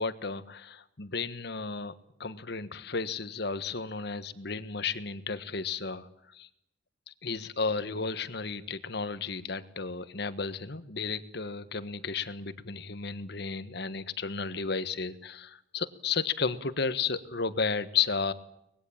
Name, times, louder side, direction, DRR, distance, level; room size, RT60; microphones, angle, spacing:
voice 1, 0.0-1.9 2.2-6.5 7.1-18.3, left 5 dB, 65° left, 13 dB, 1.5 m, -33 dB
24.5 x 20.5 x 8.8 m, 0.82 s
head